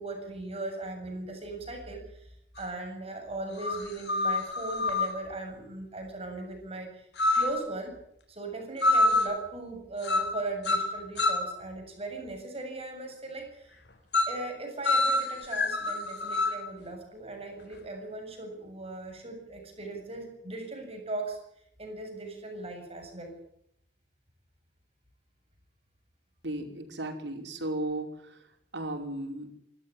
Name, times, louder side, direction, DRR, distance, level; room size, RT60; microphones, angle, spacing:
voice 1, 0.0-7.1 7.3-8.0 8.3-13.8 14.3-23.3, right 2 dB, 35° right, 3 dB, 7.5 m, -38 dB
sound 1, 2.6-2.7 3.6-5.2 7.2-7.6 8.8-9.4 10.0-10.4 10.6-11.5 14.1-14.4 14.8-16.6, left 2 dB, 70° left, 3.8 m, -26 dB
voice 2, 26.4-28.3 28.7-29.5, right 1 dB, 80° right, 4 dB, 5.3 m, -35 dB
26.0 x 14.0 x 9.9 m, 0.73 s
head